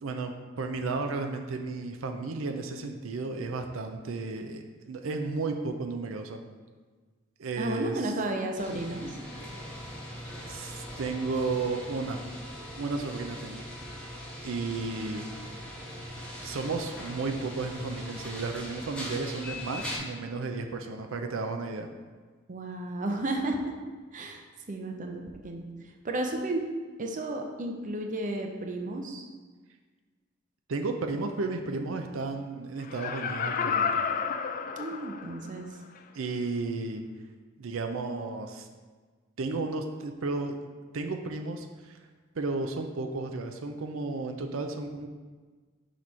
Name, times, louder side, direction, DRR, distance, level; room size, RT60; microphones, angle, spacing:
voice 1, 0.0-6.4 7.4-8.1 10.4-12.2 12.8-13.7 14.4-15.9 16.4-21.9 30.7-34.0 36.1-37.0 37.6-38.7 39.4-40.6 40.9-42.0 42.4-45.1, right 3 dB, 85° right, 5 dB, 0.5 m, -33 dB
voice 2, 7.6-9.1 22.5-23.7 24.1-25.6 26.0-26.6 27.0-29.2 34.8-35.7, right 1 dB, 40° right, 3 dB, 0.6 m, -33 dB
sound 1, 8.6-20.0, equal, 5° left, 1.2 m, -40 dB
Laughter, 32.8-35.5 36.0-36.1, left 6 dB, 45° left, 0.3 m, -30 dB
6.3 x 3.1 x 5.4 m, 1.4 s
head